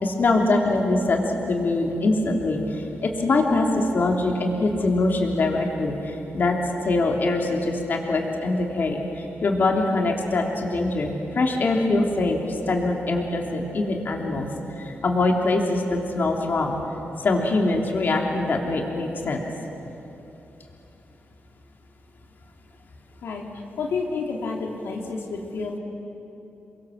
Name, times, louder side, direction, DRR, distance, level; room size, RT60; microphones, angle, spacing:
voice 1, 0.0-6.6 6.8-14.5 14.8-16.8 17.2-19.5, left 2 dB, 55° left, 1 dB, 3.2 m, -23 dB
voice 2, 23.8-25.8, left 4 dB, 90° left, 0 dB, 2.9 m, -29 dB
29.0 x 23.0 x 7.6 m, 3.0 s
cardioid pair, 105°, 4 cm